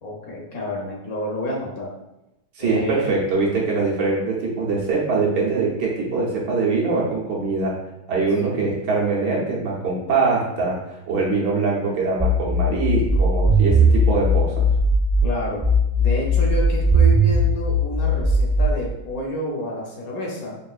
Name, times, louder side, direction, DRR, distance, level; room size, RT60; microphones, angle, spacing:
voice 1, 0.0-1.9 2.6-3.1 8.5-8.7 15.2-15.6 16.0-20.6, equal, 60° left, -2 dB, 1.2 m, -29 dB
voice 2, 2.5-7.8 8.1-10.8 11.1-14.6, right 4 dB, 75° right, -4 dB, 1.5 m, -23 dB
sound 1, 12.2-15.2 15.6-18.6, equal, 40° right, 0.8 m, -18 dB
5.4 x 2.6 x 2.4 m, 0.92 s
omnidirectional pair, 1.8 m